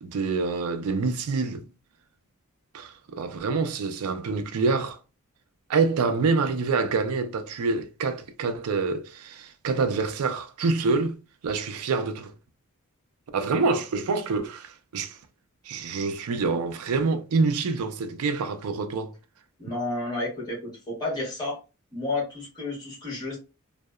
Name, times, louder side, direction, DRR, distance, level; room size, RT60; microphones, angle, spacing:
voice 1, 0.0-1.7 2.7-5.0 5.7-12.3 13.3-15.2 15.7-19.1, right 4 dB, 85° right, 0.4 m, -26 dB
voice 2, 19.6-21.6 21.9-23.4, left 2 dB, 20° left, 1.2 m, -31 dB
2.8 x 2.0 x 2.2 m
head